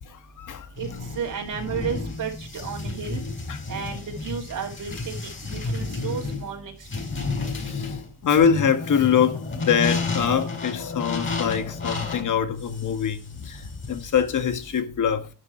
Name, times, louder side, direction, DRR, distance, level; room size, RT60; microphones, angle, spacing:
voice 1, 0.4-0.7 3.5-3.6 7.5-8.0 8.2-15.3, left 7 dB, 45° left, 1.7 m, -24 dB
sound 1, 0.8-14.8, left 3 dB, 30° left, 5.9 m, -32 dB
voice 2, 1.2-3.2 3.7-5.1 5.5-6.7, right 7 dB, 50° right, 2.6 m, -32 dB
12.0 x 10.0 x 4.5 m
cardioid pair, 155°, 42 cm